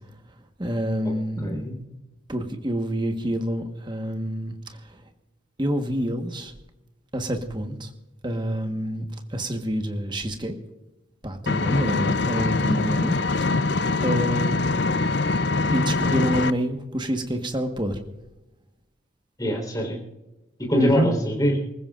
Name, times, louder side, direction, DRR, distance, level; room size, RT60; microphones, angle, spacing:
voice 1, 0.6-1.6 2.3-4.8 5.6-6.5 7.1-7.9 8.2-9.0 9.3-10.5 11.2-13.2 13.7-15.1 15.7-18.0 20.7-21.1, equal, 25° right, 5 dB, 1.4 m, -27 dB
voice 2, 1.4-1.8 19.4-20.0 20.6-21.6, equal, 20° left, 1 dB, 4.1 m, -24 dB
Engine, 11.5-16.5, left 3 dB, 60° left, 0.5 m, -23 dB
25.5 x 15.0 x 2.5 m, 1.0 s
head